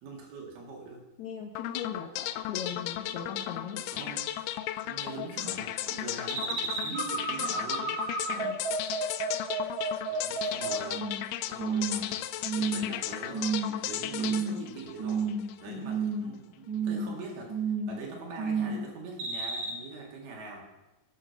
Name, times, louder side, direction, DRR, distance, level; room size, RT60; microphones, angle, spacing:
voice 1, 0.0-1.0 3.9-4.2 4.8-8.0 10.1-11.0 11.5-12.2 12.6-20.6, right 3 dB, 80° right, -1 dB, 4.0 m, -43 dB
voice 2, 1.2-3.9 8.3-8.6 15.7-15.9, left 7 dB, 70° left, 1 dB, 1.8 m, -39 dB
sound 1, 1.6-15.6, left 13 dB, 85° left, 2.5 m, -35 dB
sound 2, 6.3-11.3 11.6-12.1 12.4-13.0 13.3-13.8 14.1-14.7 15.0-15.5 15.8-16.3 16.7-17.1 17.5-18.0 18.4-18.8 19.2-19.7, right 4 dB, 55° right, 2.6 m, -31 dB
12.5 x 6.3 x 5.8 m, 1.1 s
omnidirectional pair, 4.4 m